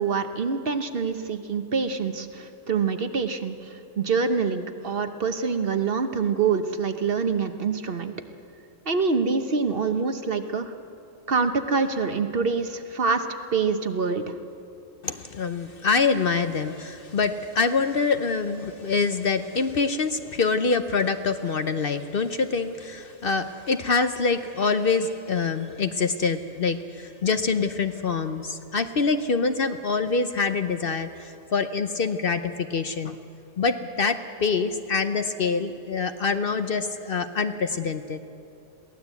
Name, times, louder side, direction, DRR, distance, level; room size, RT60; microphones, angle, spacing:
voice 1, 0.0-8.1 8.9-10.7 11.3-13.3 13.5-14.3, right 5 dB, 50° right, 8 dB, 1.1 m, -25 dB
voice 2, 15.0-33.2 33.6-38.2, left 4 dB, 50° left, 9 dB, 0.9 m, -25 dB
22.5 x 16.5 x 8.2 m, 2.7 s
omnidirectional pair, 1.3 m